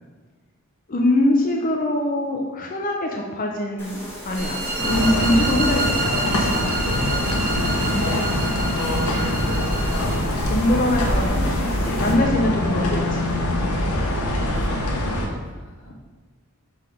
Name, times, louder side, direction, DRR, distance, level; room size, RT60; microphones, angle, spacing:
voice 1, 0.9-4.0 4.3-6.6 7.9-8.1 10.5-13.3 13.6-13.8, left 1 dB, 40° left, 0 dB, 0.5 m, -23 dB
sound 1, 3.8-12.1, equal, 10° left, 1.3 m, -34 dB
sound 2, 4.4-10.2, right 3 dB, 40° right, 0.8 m, -29 dB
sound 3, 4.8-15.3, left 1 dB, 85° left, 1.1 m, -23 dB
voice 2, 8.8-10.0 13.9-15.9, right 1 dB, 65° right, -5 dB, 1.8 m, -40 dB
5.9 x 3.5 x 4.9 m, 1.4 s
head